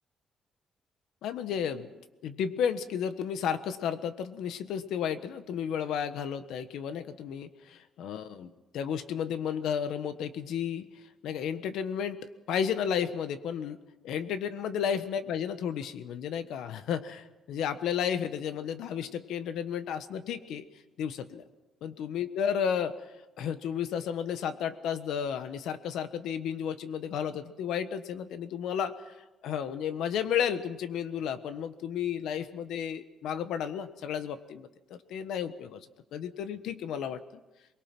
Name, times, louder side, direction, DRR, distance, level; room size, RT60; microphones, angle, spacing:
voice 1, 1.2-1.9 2.2-10.9 11.2-12.2 12.5-13.8 14.0-20.6 21.0-21.4 21.8-23.0 23.4-29.1 29.4-35.9 36.1-37.4, left 8 dB, 85° left, 11 dB, 1.3 m, -32 dB
23.5 x 21.5 x 6.0 m, 1.0 s
cardioid pair, 165°, 0 cm